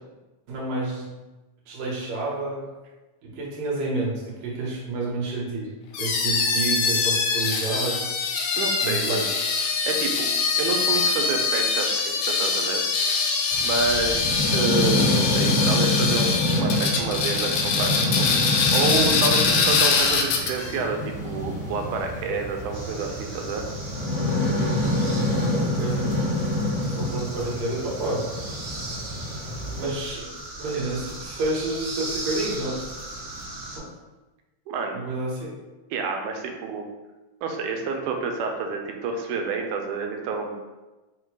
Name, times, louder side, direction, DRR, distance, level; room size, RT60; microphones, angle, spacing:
voice 1, 0.5-1.1 1.7-2.7 3.2-5.7 6.0-8.1 8.8-9.2 25.5-26.1 26.8-28.3 29.7-32.8 33.8-33.9 34.9-35.5, right 2 dB, 70° right, -4 dB, 2.3 m, -29 dB
sound 1, 5.9-20.8, left 4 dB, 90° left, 2.0 m, -23 dB
voice 2, 8.6-9.3 9.9-12.8 13.6-18.5 18.7-23.6 34.7-35.0 35.9-36.9 37.4-40.6, right 4 dB, 90° right, 3 dB, 2.0 m, -29 dB
sound 2, 13.5-29.9, left 1 dB, 55° left, 0.8 m, -27 dB
sound 3, 22.7-33.8, right 2 dB, 50° right, 1.2 m, -38 dB
5.4 x 2.2 x 4.5 m, 1.1 s
omnidirectional pair, 3.4 m